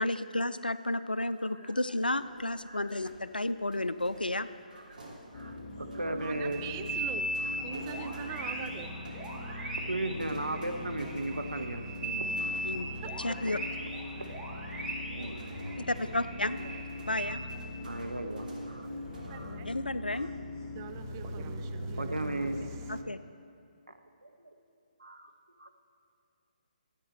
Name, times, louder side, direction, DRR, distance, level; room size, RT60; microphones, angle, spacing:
voice 1, 0.0-4.5 12.6-12.9 13.2-13.6 15.8-16.6 17.0-17.4 19.6-20.3 22.9-23.2, left 1 dB, 90° left, 13 dB, 0.4 m, -32 dB
sound 1, 2.2-19.4, right 1 dB, 65° right, 2.9 m, -52 dB
voice 2, 2.7-3.0 4.7-5.0 5.3-6.6 7.4-7.6 8.4-8.7 9.4-12.6 14.3-14.5 15.1-15.9 17.2-17.5 17.8-18.9 19.3-19.6 20.1-20.3 21.9-22.6 24.2-24.5 25.0-25.3 25.6-25.7, right 2 dB, 85° right, 6 dB, 0.9 m, -37 dB
sound 2, 5.3-23.0, left 2 dB, 30° left, 2.1 m, -41 dB
voice 3, 6.2-7.3 7.6-9.0 13.0-13.2 18.8-19.7 20.8-22.8, right 8 dB, 25° right, 8 dB, 0.4 m, -43 dB
sound 3, 6.3-17.3, right 1 dB, 10° right, 1.2 m, -39 dB
13.0 x 8.5 x 4.4 m, 2.4 s
figure-of-eight pair, 140°, 5 cm